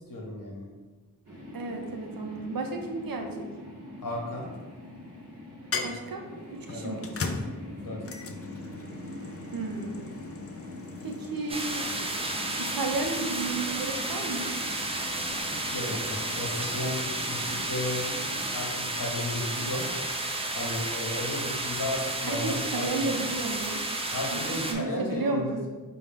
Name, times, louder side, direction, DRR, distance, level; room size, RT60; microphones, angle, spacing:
voice 1, 0.1-0.6 4.0-4.5 6.7-7.0 7.8-8.0 15.6-19.8 20.5-23.1 24.1-25.7, left 1 dB, 60° left, -2 dB, 1.0 m, -34 dB
sound 1, 1.2-17.7, left 1 dB, 40° right, 1.0 m, -44 dB
voice 2, 1.5-3.5 5.8-6.2 6.5-7.4 9.5-10.1 11.0-11.9 12.6-14.5 22.3-23.8 24.3-25.7, right 3 dB, 65° right, 3 dB, 0.6 m, -33 dB
sound 2, 4.0-4.7 5.7-19.0, left 4 dB, 40° left, 0.4 m, -41 dB
sound 3, 11.5-24.7, right 2 dB, 15° right, 0.4 m, -32 dB
4.1 x 2.3 x 3.6 m, 1.3 s
cardioid pair, 50°, 37 cm